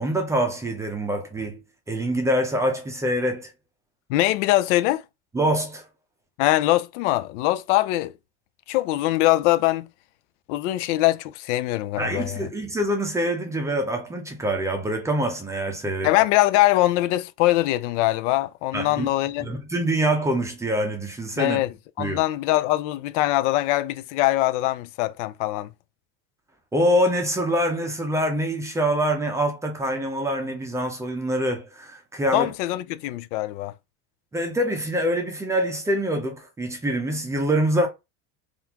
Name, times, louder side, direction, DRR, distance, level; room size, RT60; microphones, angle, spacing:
voice 1, 0.0-1.6 1.9-3.5 5.3-5.8 12.0-16.1 18.7-19.1 19.4-21.6 22.0-22.2 26.7-32.5 34.3-37.9, right 1 dB, 10° right, 0.5 m, -25 dB
voice 2, 4.1-5.0 6.4-8.1 8.7-9.9 10.5-12.5 16.0-19.5 21.4-21.7 22.0-25.7 32.3-33.7, left 16 dB, 80° left, 0.5 m, -22 dB
3.8 x 2.5 x 2.8 m
cardioid pair, 160°, 35 cm